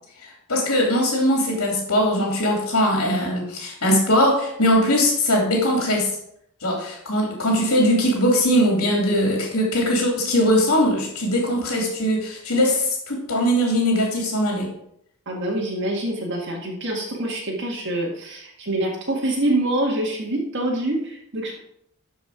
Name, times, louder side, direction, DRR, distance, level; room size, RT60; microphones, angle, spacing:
voice 1, 0.2-6.2 6.6-14.7, equal, 80° left, -1 dB, 2.7 m, -20 dB
voice 2, 15.2-21.6, right 1 dB, 55° right, -1 dB, 1.9 m, -25 dB
13.0 x 5.0 x 4.9 m, 0.73 s
head